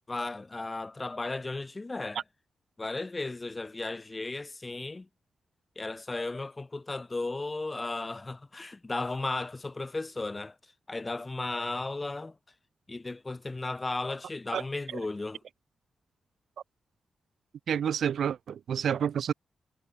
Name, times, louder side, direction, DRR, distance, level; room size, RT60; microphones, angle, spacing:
voice 1, 0.1-2.2 2.8-5.1 5.7-10.5 10.9-12.4 12.9-15.4, left 2 dB, 30° left, 3.5 m, -35 dB
voice 2, 17.7-19.3, right 8 dB, 80° right, 0.6 m, -29 dB
cardioid pair, 55°, 0 cm